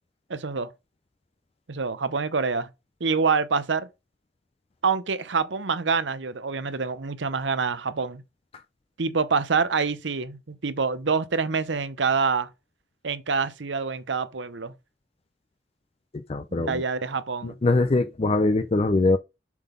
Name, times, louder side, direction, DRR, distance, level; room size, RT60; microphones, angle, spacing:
voice 1, 0.3-0.7 1.7-2.7 3.0-3.9 4.8-8.2 9.0-12.5 13.0-14.7 16.5-17.6, right 5 dB, 80° right, 0.8 m, -26 dB
voice 2, 16.1-16.8 17.4-19.2, left 2 dB, 35° left, 0.4 m, -22 dB
7.3 x 4.0 x 5.1 m
head